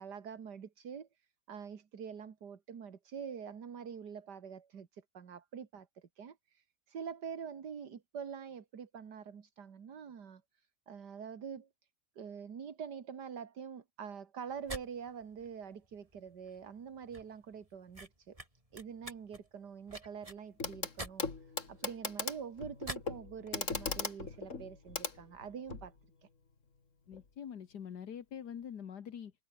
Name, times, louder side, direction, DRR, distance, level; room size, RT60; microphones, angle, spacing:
voice 1, 0.0-11.7 12.2-18.4 18.7-21.3 21.7-25.9 26.2-26.3, right 7 dB, 75° right, 2.4 m, -45 dB
sound 1, 14.5-23.2, right 1 dB, 20° right, 6.0 m, -49 dB
Clock, 20.6-20.9 21.2-25.9 27.1-27.2, left 4 dB, 45° left, 2.8 m, -39 dB
voice 2, 27.1-29.3, left 8 dB, 75° left, 2.0 m, -44 dB
omnidirectional pair, 1.8 m